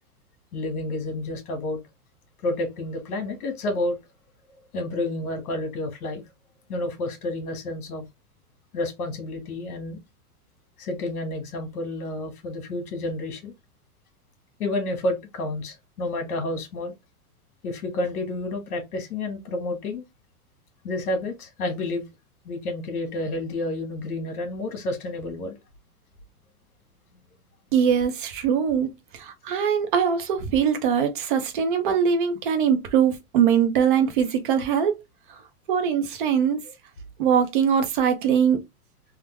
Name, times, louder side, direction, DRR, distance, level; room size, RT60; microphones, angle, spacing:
voice 1, 0.5-1.8 2.4-4.0 4.7-6.2 6.7-8.0 8.7-10.0 10.8-13.5 14.6-16.9 17.6-20.0 20.8-22.0 22.5-25.6, left 2 dB, 75° left, 1.7 m, -30 dB
voice 2, 27.7-35.0 35.7-36.6 37.2-38.6, right 7 dB, 35° right, 0.6 m, -22 dB
3.6 x 2.0 x 3.1 m
supercardioid pair, 170°, 44 cm